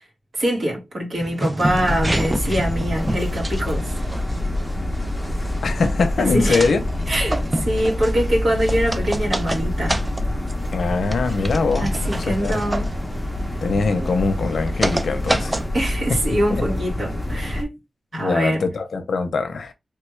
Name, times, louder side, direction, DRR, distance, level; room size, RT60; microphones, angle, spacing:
voice 1, 0.3-4.0 6.2-6.7 7.1-10.0 11.8-12.9 15.7-17.8 18.1-18.6, equal, 65° right, 1.7 m, -24 dB
sound 1, 1.2-15.7, right 1 dB, 15° right, 0.3 m, -30 dB
sound 2, 1.7-17.6, left 1 dB, 10° left, 0.7 m, -26 dB
voice 2, 5.6-6.8 10.7-12.6 13.6-15.6 16.1-16.2 16.5-16.6 18.1-19.7, left 4 dB, 80° left, 0.6 m, -22 dB
3.3 x 2.3 x 3.2 m
wide cardioid pair, 140°, 0 cm